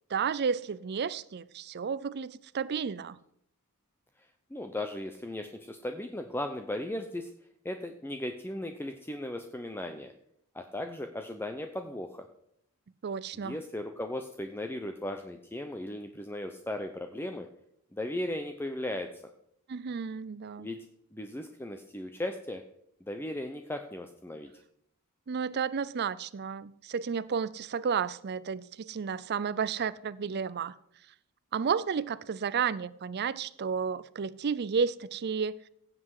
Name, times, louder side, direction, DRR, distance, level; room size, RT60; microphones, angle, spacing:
voice 1, 0.1-3.2 13.0-13.6 19.7-20.7 25.3-30.7 31.5-35.7, right 6 dB, 45° right, 0.4 m, -32 dB
voice 2, 4.5-7.3 7.6-10.1 10.5-12.3 13.3-17.5 17.9-19.2 20.6-20.9 21.1-22.6 23.0-24.5, left 1 dB, 10° left, 0.6 m, -37 dB
16.0 x 7.7 x 4.8 m
head